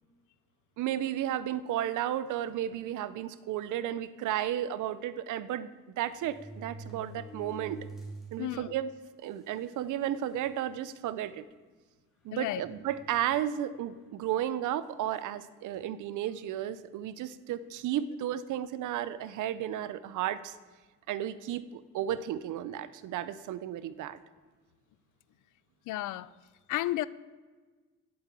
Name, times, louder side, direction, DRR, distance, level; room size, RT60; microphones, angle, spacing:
voice 1, 0.8-5.7 6.0-7.8 8.3-8.9 9.2-11.4 12.2-20.5 21.1-24.2, right 11 dB, 80° right, 0.6 m, -33 dB
sound 1, 2.5-2.7 3.5-3.6 3.9-4.0 5.3-5.4 6.1-8.3 8.8-8.9 9.7-9.8 10.2-10.6 11.2-11.3 12.6-13.4 14.4-14.7, right 2 dB, ahead, 2.4 m, -46 dB
voice 2, 8.4-8.7 12.3-12.6 25.9-26.3 26.7-27.1, left 15 dB, 85° left, 0.5 m, -32 dB
8.0 x 7.8 x 8.2 m
cardioid pair, 90°, 30 cm